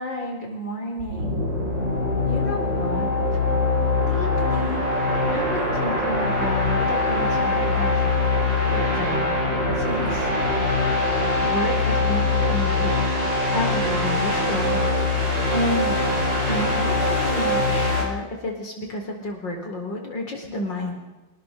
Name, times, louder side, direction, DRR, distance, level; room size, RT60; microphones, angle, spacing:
voice 1, 0.0-1.4 2.2-3.1 4.0-8.0 8.6-9.3 9.8-10.3 11.4-12.9 13.5-14.8 15.1-16.0 16.5-21.0, left 1 dB, 85° left, 1 dB, 5.0 m, -31 dB
sound 1, 1.0-18.0, left 2 dB, 80° right, 6.4 m, -22 dB
26.0 x 21.0 x 6.8 m, 1.1 s
omnidirectional pair, 1.9 m